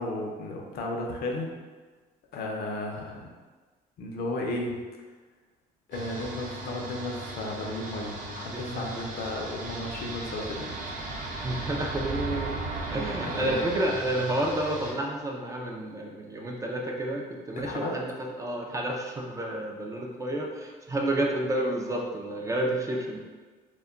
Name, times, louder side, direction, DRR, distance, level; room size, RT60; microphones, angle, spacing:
voice 1, 0.0-1.5 2.3-3.3 4.0-4.8 5.9-10.7 13.2-13.6 17.6-17.9, left 2 dB, 65° left, 0 dB, 0.5 m, -34 dB
sound 1, 5.9-14.9, right 2 dB, 50° right, 0.7 m, -36 dB
voice 2, 8.5-9.1 11.4-12.5 12.9-18.1 18.4-23.2, right 1 dB, 20° right, 0 dB, 0.3 m, -30 dB
2.2 x 2.1 x 3.6 m, 1.4 s
cardioid pair, 110°, 17 cm